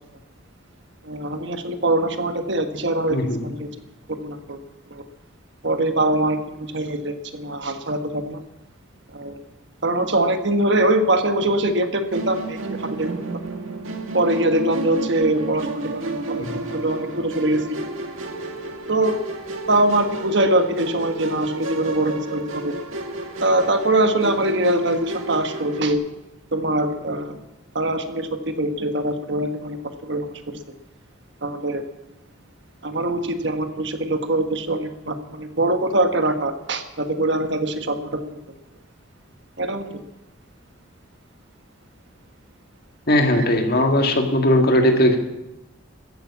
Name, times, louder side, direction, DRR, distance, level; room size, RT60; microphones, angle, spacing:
voice 1, 1.0-3.7 4.1-4.6 4.9-5.0 5.6-8.4 9.1-9.4 9.8-13.1 14.1-17.8 18.9-19.2 19.7-22.8 23.4-26.0 26.5-27.4 27.7-30.6 31.4-31.8 32.8-38.4 39.6-40.0 43.4-43.5, right 1 dB, 60° right, 7 dB, 1.4 m, -23 dB
voice 2, 3.1-3.5 16.4-16.6 43.1-45.2, left 1 dB, 50° left, 4 dB, 2.0 m, -18 dB
Musical instrument, 12.1-25.9, right 3 dB, 85° right, 2.0 m, -32 dB
14.0 x 12.0 x 8.5 m, 0.96 s
head